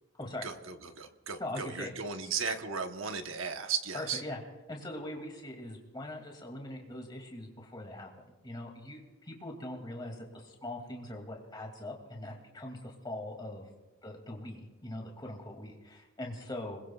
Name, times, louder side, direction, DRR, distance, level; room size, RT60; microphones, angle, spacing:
voice 1, 0.4-4.2, right 6 dB, 75° right, 7 dB, 1.1 m, -36 dB
voice 2, 1.4-1.9 3.9-4.4 4.7-13.7 14.0-16.8, left 1 dB, 20° left, 1 dB, 2.5 m, -42 dB
26.0 x 21.5 x 2.4 m, 1.1 s
head